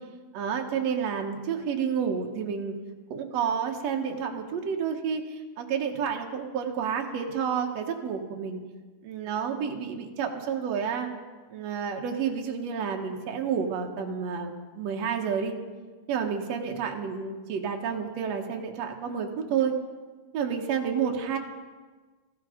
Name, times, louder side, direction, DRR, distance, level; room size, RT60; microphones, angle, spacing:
voice 1, 0.3-2.8 3.1-8.6 9.0-11.1 11.5-15.5 16.1-19.7 20.3-21.4, right 7 dB, 80° right, 2 dB, 1.5 m, -30 dB
17.5 x 15.0 x 5.0 m, 1.4 s
omnidirectional pair, 4.9 m